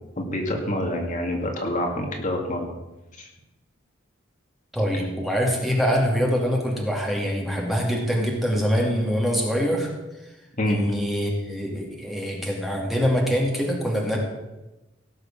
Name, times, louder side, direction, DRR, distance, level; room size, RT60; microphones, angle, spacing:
voice 1, 0.2-2.7 3.2-3.3 10.6-10.8, left 1 dB, 40° left, 1 dB, 2.2 m, -26 dB
voice 2, 4.7-9.9 10.6-14.2, equal, ahead, -1 dB, 2.4 m, -24 dB
17.0 x 6.6 x 7.4 m, 1.0 s
head